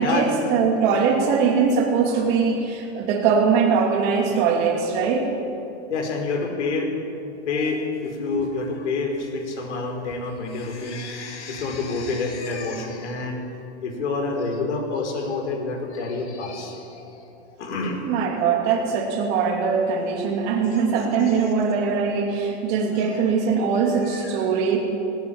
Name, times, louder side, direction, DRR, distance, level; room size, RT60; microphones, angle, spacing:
voice 1, 0.0-5.3 18.0-24.8, right 5 dB, 30° right, 2 dB, 2.7 m, -21 dB
voice 2, 5.9-7.0 7.4-13.5 13.8-18.0 20.7-20.9 21.3-21.5 23.0-23.3 23.9-24.3, left 3 dB, 80° left, 3 dB, 5.1 m, -28 dB
19.5 x 19.0 x 8.8 m, 2.8 s
supercardioid pair, 170°, 34 cm